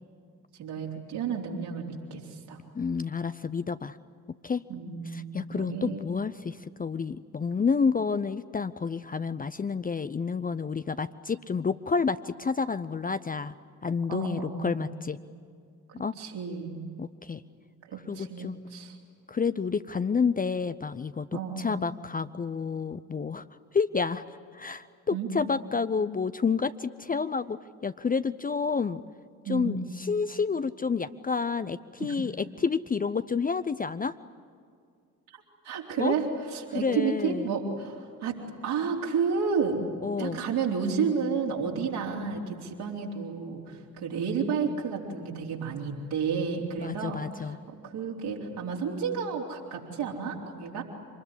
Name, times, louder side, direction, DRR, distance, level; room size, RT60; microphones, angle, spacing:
voice 1, 0.6-2.6 4.7-6.0 14.1-14.8 16.2-16.8 17.8-19.0 21.3-21.6 25.1-25.3 29.5-29.7 32.0-32.1 35.6-38.3 38.6-39.8 40.2-47.2 47.7-50.8, right 6 dB, 60° right, -1 dB, 4.1 m, -31 dB
voice 2, 2.7-4.0 4.4-4.6 5.1-13.5 13.8-15.2 16.0-16.2 17.0-17.4 18.1-18.6 19.3-23.4 23.7-24.2 24.5-29.0 29.5-34.2 36.0-36.2 36.7-37.5 40.0-40.4 46.8-47.6 50.8-50.9, left 5 dB, 20° left, 13 dB, 0.7 m, -29 dB
26.0 x 20.5 x 9.9 m, 2.3 s
figure-of-eight pair, 40°, 43 cm